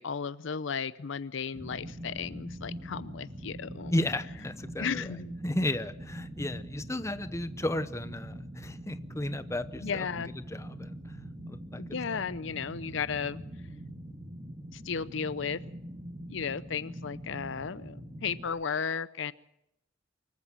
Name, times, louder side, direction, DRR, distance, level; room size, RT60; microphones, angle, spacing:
voice 1, 0.0-3.9 4.8-5.3 9.8-10.3 11.8-13.4 14.7-15.6 16.3-19.3, left 6 dB, 65° left, 17 dB, 0.7 m, -34 dB
sound 1, 1.5-18.5, equal, 25° right, 2.4 m, -43 dB
voice 2, 3.9-5.1 5.4-10.1 10.5-10.9 11.5-11.8 12.1-12.2, left 1 dB, 15° left, 12 dB, 0.9 m, -33 dB
25.0 x 14.5 x 7.5 m, 0.82 s
head